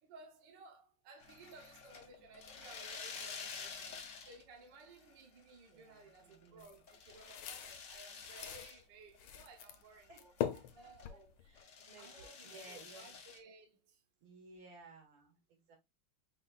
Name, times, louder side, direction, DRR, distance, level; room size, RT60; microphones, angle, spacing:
voice 1, 0.0-11.4 12.0-14.0, right 3 dB, 60° right, 1.6 m, -58 dB
sound 1, 1.2-4.6 4.9-5.5 6.0-8.8 9.1-9.2 9.7-11.1 11.6-13.4, left 5 dB, 50° left, 0.9 m, -50 dB
voice 2, 5.7-6.7 10.1-10.2 10.5-11.0 11.4-13.1 14.2-15.8, right 3 dB, 85° right, 2.9 m, -58 dB
sound 2, 6.6-8.7 9.2-9.8 10.1-11.6, left 10 dB, 80° left, 1.5 m, -42 dB
5.2 x 3.9 x 2.3 m
omnidirectional pair, 2.3 m